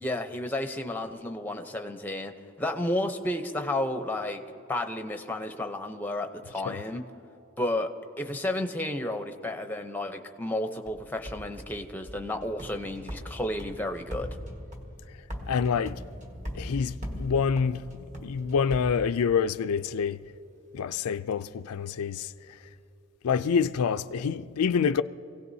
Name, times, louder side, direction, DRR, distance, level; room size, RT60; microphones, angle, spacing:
voice 1, 0.0-2.3 2.6-4.4 4.7-7.0 7.6-7.9 8.2-14.3, left 1 dB, 10° left, 0.7 m, -32 dB
sound 1, 10.9-19.6, equal, 30° right, 1.4 m, -40 dB
voice 2, 15.5-16.0 16.5-20.2 20.7-22.3 23.2-25.0, left 6 dB, 85° left, 0.4 m, -27 dB
26.0 x 17.0 x 2.7 m
head